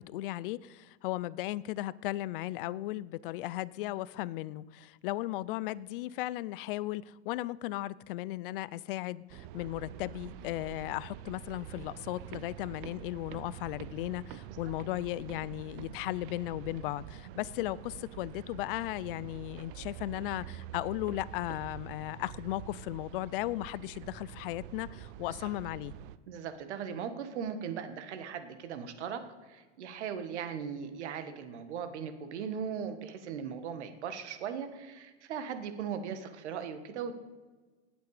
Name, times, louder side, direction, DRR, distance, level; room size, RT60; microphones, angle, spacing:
voice 1, 0.0-25.9, left 16 dB, 50° left, 20 dB, 0.5 m, -36 dB
sound 1, 9.3-26.2, right 12 dB, 50° right, 0.6 m, -46 dB
voice 2, 26.3-37.2, right 7 dB, 70° right, 9 dB, 1.7 m, -38 dB
18.5 x 8.2 x 4.9 m, 1.3 s
supercardioid pair, 145°, 35 cm